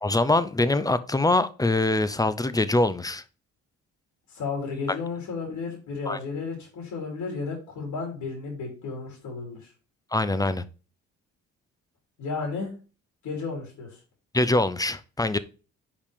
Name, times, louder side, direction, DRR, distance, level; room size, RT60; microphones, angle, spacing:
voice 1, 0.0-3.2 6.1-6.2 10.1-10.6 14.3-15.4, left 2 dB, 10° left, 14 dB, 0.6 m, -23 dB
voice 2, 4.3-9.7 12.2-12.7 13.2-14.0, left 4 dB, 70° left, -1 dB, 3.1 m, -33 dB
5.2 x 5.1 x 5.1 m, 0.35 s
cardioid pair, 90°, 30 cm